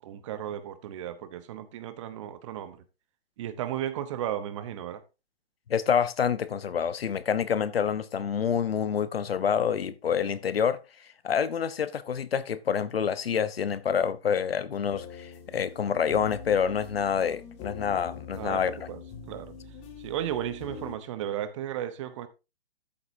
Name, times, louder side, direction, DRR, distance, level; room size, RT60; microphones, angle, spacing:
voice 1, 0.0-2.8 3.4-5.0 18.3-19.0 19.3-19.5 20.0-22.3, right 11 dB, 30° right, 1.0 m, -34 dB
voice 2, 5.7-10.8 11.2-18.7, left 7 dB, 70° left, 1.1 m, -27 dB
sound 1, 14.9-21.0, left 6 dB, 20° left, 2.0 m, -44 dB
13.0 x 7.9 x 2.7 m
hypercardioid pair, 145°, 31 cm